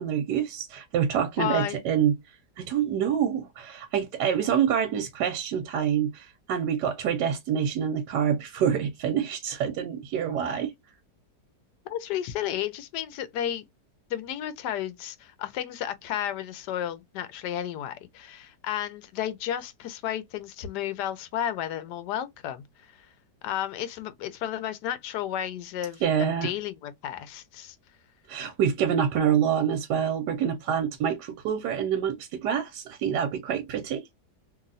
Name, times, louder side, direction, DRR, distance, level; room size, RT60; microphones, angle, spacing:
voice 1, 0.0-2.1 2.6-10.7 26.0-26.5 28.3-34.0, right 8 dB, 90° right, 1.3 m, -26 dB
voice 2, 1.4-1.8 11.9-13.6 14.1-23.1 23.4-27.8, left 11 dB, 80° left, 1.2 m, -32 dB
2.9 x 2.7 x 2.5 m
omnidirectional pair, 1.8 m